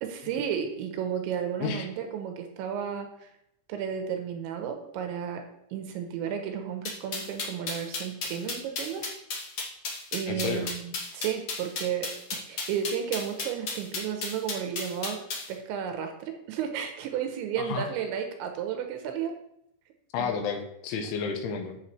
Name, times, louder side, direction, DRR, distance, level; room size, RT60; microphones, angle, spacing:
voice 1, 0.0-3.3 3.7-5.4 5.7-9.1 10.1-15.2 15.5-19.3 20.2-20.4, right 8 dB, 80° right, 5 dB, 3.0 m, -33 dB
sound 1, 6.8-15.5, left 4 dB, 60° left, 1.5 m, -33 dB
voice 2, 10.3-10.7 17.6-17.9 20.1-21.8, left 5 dB, 75° left, 4 dB, 3.2 m, -31 dB
10.5 x 7.4 x 3.2 m, 0.77 s
omnidirectional pair, 5.6 m